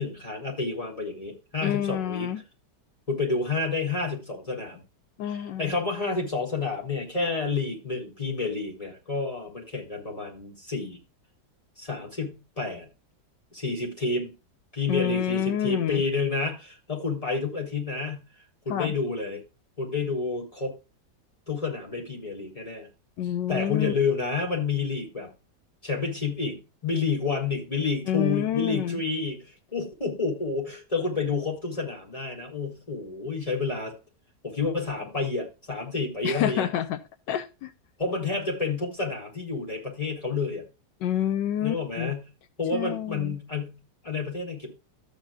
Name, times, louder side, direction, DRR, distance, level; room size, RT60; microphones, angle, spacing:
voice 1, 0.0-2.3 3.1-4.8 5.2-11.0 11.8-12.9 13.5-14.3 14.7-18.2 18.6-19.4 19.8-20.7 21.5-22.9 23.5-25.3 25.8-34.0 34.4-36.7 38.0-40.6 41.6-42.3 42.6-44.7, left 4 dB, 20° left, -1 dB, 4.0 m, -29 dB
voice 2, 1.6-2.4 5.2-5.7 14.9-16.0 18.7-18.9 23.2-23.9 28.1-29.0 36.2-37.0 37.3-37.7 41.0-42.1 42.7-43.4, left 10 dB, 90° left, 12 dB, 1.4 m, -28 dB
14.0 x 8.6 x 2.4 m, 0.29 s
omnidirectional pair, 1.9 m